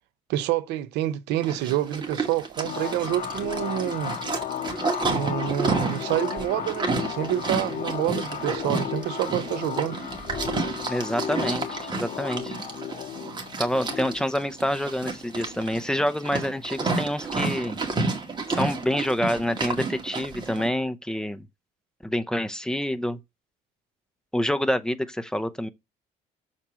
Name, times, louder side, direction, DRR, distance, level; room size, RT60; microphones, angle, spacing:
voice 1, 0.3-4.2 5.0-10.0, right 13 dB, 90° right, 0.9 m, -28 dB
Livestock farm animals working animals, 1.4-20.7, right 3 dB, 25° right, 2.0 m, -31 dB
sound 1, 2.6-15.9, left 9 dB, 50° left, 1.0 m, -35 dB
voice 2, 10.9-12.6 13.6-17.8 18.5-21.4 22.0-23.2 24.3-25.7, equal, 5° left, 0.7 m, -27 dB
6.7 x 4.3 x 6.2 m
cardioid pair, 110°, 17 cm